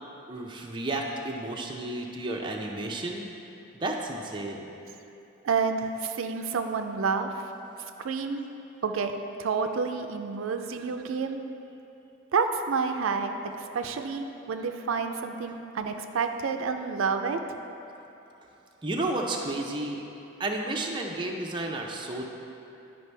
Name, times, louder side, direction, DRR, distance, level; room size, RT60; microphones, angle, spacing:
voice 1, 0.3-3.2 3.7-4.7 18.8-20.0 20.4-22.2, right 2 dB, 25° right, 0 dB, 0.5 m, -32 dB
voice 2, 5.4-7.5 8.0-8.4 8.8-11.4 12.3-17.4, right 5 dB, 85° right, 6 dB, 0.4 m, -29 dB
10.5 x 5.2 x 3.3 m, 2.9 s
head